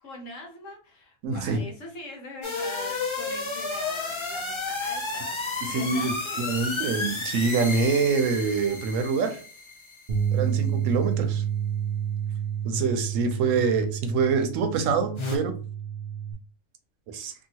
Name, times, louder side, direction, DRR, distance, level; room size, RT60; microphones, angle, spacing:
voice 1, 0.0-6.5 13.1-13.2, left 1 dB, 75° left, 1 dB, 1.3 m, -42 dB
voice 2, 1.2-1.6 5.6-9.4 10.3-11.4 12.6-15.5 17.1-17.3, right 4 dB, 80° right, 7 dB, 1.0 m, -25 dB
sound 1, 2.4-10.3 15.2-15.4, left 3 dB, 55° left, 0.3 m, -32 dB
sound 2, 10.1-16.3, right 8 dB, 60° right, 0.6 m, -29 dB
2.7 x 2.7 x 2.8 m, 0.40 s
omnidirectional pair, 1.3 m